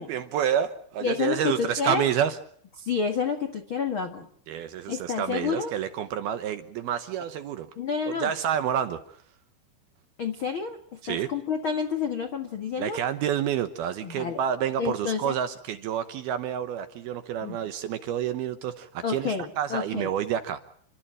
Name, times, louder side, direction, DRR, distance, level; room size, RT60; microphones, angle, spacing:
voice 1, 0.0-2.4 4.5-7.7 8.1-9.2 11.0-11.3 12.8-20.6, right 9 dB, 70° right, 10 dB, 2.5 m, -29 dB
voice 2, 1.0-2.0 2.8-4.3 4.9-5.7 7.8-8.3 10.2-13.0 14.0-14.4 14.8-15.3 17.4-17.6 19.0-20.1, left 6 dB, 80° left, 6 dB, 1.1 m, -29 dB
30.0 x 13.0 x 8.9 m, 0.64 s
omnidirectional pair, 5.4 m